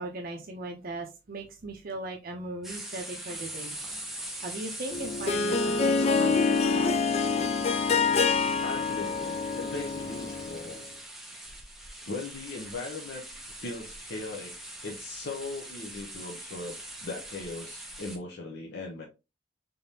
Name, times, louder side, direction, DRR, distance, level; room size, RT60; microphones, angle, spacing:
voice 1, 0.0-3.7 4.4-6.9, right 2 dB, 50° right, 0.6 m, -38 dB
sound 1, 2.6-18.2, right 1 dB, ahead, 0.7 m, -42 dB
Harp, 4.9-10.7, left 4 dB, 35° left, 0.3 m, -26 dB
voice 2, 6.1-6.4 8.6-10.9 12.1-13.2 13.6-14.6 14.8-19.0, left 3 dB, 60° left, 0.7 m, -39 dB
3.8 x 3.5 x 2.7 m
head